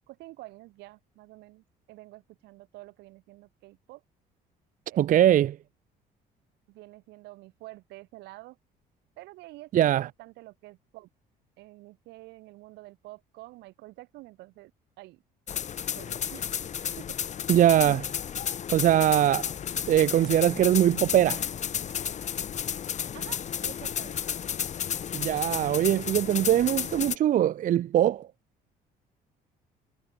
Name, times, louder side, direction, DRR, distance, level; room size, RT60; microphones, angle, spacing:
voice 1, 0.1-4.0 4.9-5.5 6.7-8.6 9.2-11.1 11.6-14.7 15.0-15.2 15.9-16.5 17.0-17.2 23.1-24.2, right 20 dB, 90° right, 3.1 m, -48 dB
voice 2, 5.0-5.5 9.7-10.1 17.5-18.1 18.7-19.5 19.9-21.4 25.1-28.3, right 11 dB, 50° right, 0.7 m, -22 dB
sound 1, 15.5-27.2, left 8 dB, 45° left, 1.6 m, -32 dB
cardioid pair, 110°, 17 cm